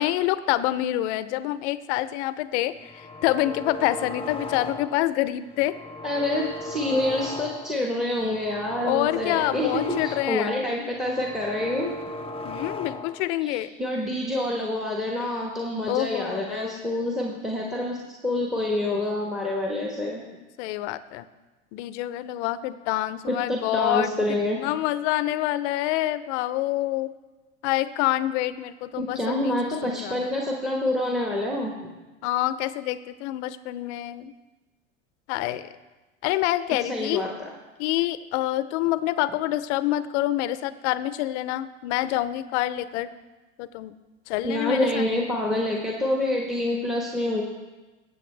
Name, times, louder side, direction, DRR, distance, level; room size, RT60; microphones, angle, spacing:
voice 1, 0.0-5.8 8.9-10.5 12.4-13.7 15.9-16.8 20.6-21.3 21.7-27.1 27.6-30.3 32.2-34.3 35.3-35.7 36.2-37.3 37.8-43.1 43.6-43.9 44.3-45.1, left 15 dB, 75° left, 15 dB, 0.6 m, -27 dB
sound 1, 2.7-5.1 5.5-7.8 8.2-10.6 10.9-13.3, left 2 dB, 15° left, 0.6 m, -37 dB
voice 2, 6.0-11.9 13.4-20.2 23.3-24.6 29.0-31.9 36.9-37.5 44.4-47.4, left 1 dB, ahead, -1 dB, 1.3 m, -27 dB
16.5 x 7.7 x 3.3 m, 1.2 s
supercardioid pair, 105°, 35 cm